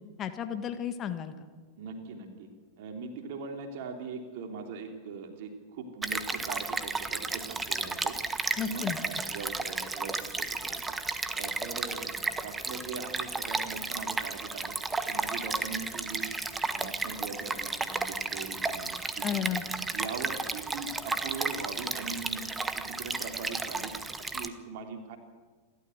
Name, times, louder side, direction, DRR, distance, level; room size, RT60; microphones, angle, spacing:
voice 1, 0.2-1.4 8.6-9.0 19.2-19.6, left 9 dB, 30° left, 9 dB, 1.6 m, -33 dB
voice 2, 1.8-2.5 2.8-8.2 8.5-10.8 11.3-12.2 12.4-16.3 16.6-19.6 19.9-22.4 22.7-25.2, right 4 dB, 50° right, 4 dB, 3.4 m, -41 dB
Stream, 6.0-24.5, right 3 dB, 10° right, 1.3 m, -33 dB
28.5 x 13.0 x 8.1 m, 1.4 s
figure-of-eight pair, 90°, 0 cm